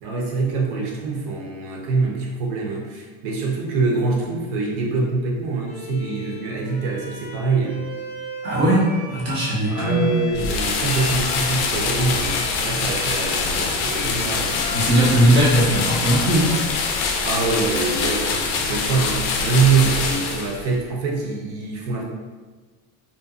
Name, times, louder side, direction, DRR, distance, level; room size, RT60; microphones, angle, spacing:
voice 1, 0.0-7.8 9.7-14.6 17.2-22.0, right 4 dB, 60° right, -1 dB, 0.7 m, -24 dB
Bowed string instrument, 5.6-20.9, left 2 dB, 15° left, 0.8 m, -38 dB
voice 2, 8.4-10.1 14.7-16.6, right 1 dB, 30° right, -5 dB, 0.4 m, -19 dB
sound 1, 10.3-20.7, left 4 dB, 80° left, 0.5 m, -24 dB
2.6 x 2.2 x 2.3 m, 1.4 s
cardioid pair, 145°, 44 cm